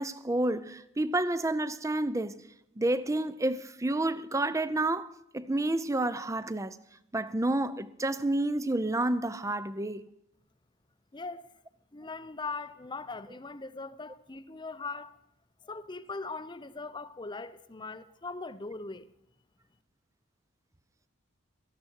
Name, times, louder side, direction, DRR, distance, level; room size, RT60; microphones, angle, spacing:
voice 1, 0.0-2.4 2.8-6.8 7.1-10.0, right 2 dB, 15° right, 0.6 m, -30 dB
voice 2, 11.1-11.5 11.9-15.2 15.6-19.1, left 3 dB, 20° left, 0.6 m, -40 dB
18.0 x 14.0 x 4.6 m
head